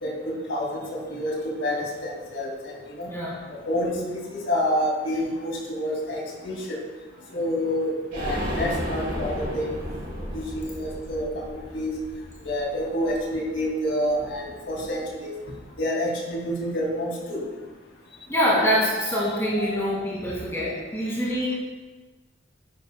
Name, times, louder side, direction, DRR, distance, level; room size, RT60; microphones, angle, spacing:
voice 1, 0.0-3.1 3.7-6.8 7.3-9.7 10.3-11.9 12.4-15.3 15.8-17.4 19.0-19.9, equal, 60° left, -3 dB, 2.4 m, -28 dB
voice 2, 3.1-3.4 18.3-21.6, equal, 15° left, -6 dB, 2.1 m, -25 dB
sound 1, 8.1-13.7 14.1-14.2 14.5-14.6, equal, 45° right, 2.1 m, -34 dB
11.5 x 10.0 x 2.2 m, 1.3 s
head